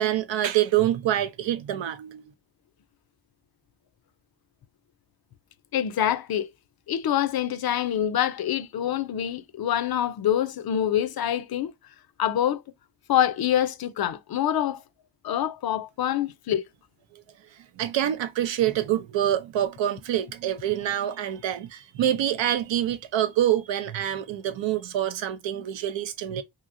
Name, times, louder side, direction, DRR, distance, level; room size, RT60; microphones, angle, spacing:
voice 1, 0.0-2.2 17.1-17.2 17.5-26.4, right 11 dB, 85° right, 0.6 m, -26 dB
voice 2, 5.7-6.5 6.9-11.7 12.2-12.6 13.1-14.8 15.2-16.6, left 10 dB, 55° left, 0.5 m, -25 dB
2.9 x 2.8 x 2.5 m
cardioid pair, 55°, 44 cm